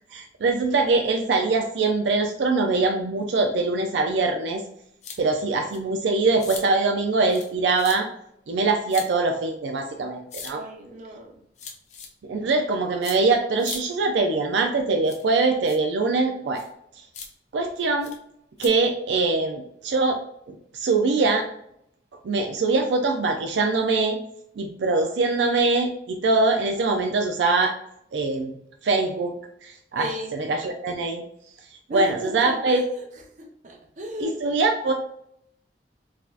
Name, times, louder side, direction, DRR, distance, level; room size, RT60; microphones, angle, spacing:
voice 1, 0.0-4.6 5.2-8.1 8.5-10.6 12.2-16.6 17.5-18.1 18.6-20.2 20.5-21.5 22.2-24.2 24.6-27.7 28.1-28.6 28.8-29.3 29.6-31.2 31.9-32.8 34.2-34.9, right 3 dB, 90° right, 3 dB, 0.4 m, -23 dB
sound 1, 5.0-5.2 5.7-5.8 6.4-6.6 7.3-7.5 7.8-8.0 8.9-9.1 10.3-10.5 11.6-12.1 13.0-13.2 13.6-13.8 15.0-15.2 15.7-15.8 16.6-16.7 17.1-17.3 18.0-18.2 18.6-18.7, left 5 dB, 40° left, 0.6 m, -37 dB
voice 2, 10.5-11.4 29.9-30.3 31.9-34.4, equal, 45° right, 1 dB, 0.6 m, -35 dB
4.0 x 2.7 x 2.4 m, 0.74 s
head